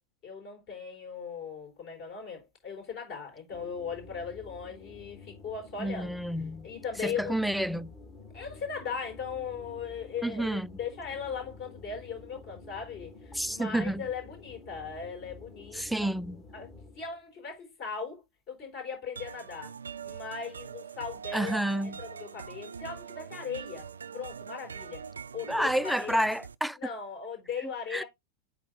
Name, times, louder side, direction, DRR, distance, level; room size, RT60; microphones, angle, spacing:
voice 1, 0.2-6.2 6.6-7.4 8.3-16.1 16.5-16.7 17.0-19.7 20.0-21.6 22.0-23.9 24.1-25.0 25.3-26.3 26.8-28.1, left 6 dB, 40° left, 4.1 m, -38 dB
sound 1, 3.5-17.2, left 3 dB, 20° left, 1.8 m, -50 dB
voice 2, 5.8-6.7 7.0-7.9 10.2-10.7 13.3-14.1 15.7-16.4 21.3-22.0 25.5-26.8 27.6-28.0, right 1 dB, ahead, 0.4 m, -30 dB
sound 2, 19.2-26.5, right 6 dB, 70° right, 0.4 m, -43 dB
8.3 x 3.1 x 3.9 m
figure-of-eight pair, 90°, 0 cm